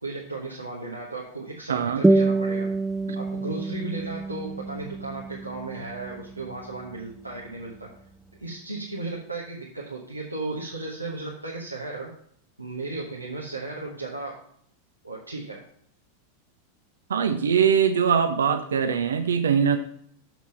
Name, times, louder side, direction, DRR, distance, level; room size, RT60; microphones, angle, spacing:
voice 1, 0.0-2.7 3.1-7.9 8.3-12.1 12.6-14.5 15.0-15.6, right 2 dB, 85° right, -3 dB, 1.2 m, -35 dB
voice 2, 1.7-2.0 17.1-19.8, right 7 dB, 65° right, 7 dB, 0.6 m, -22 dB
sound 1, 2.0-7.0, right 2 dB, 5° right, 0.3 m, -26 dB
7.1 x 6.1 x 4.2 m, 0.64 s
figure-of-eight pair, 90°, 0 cm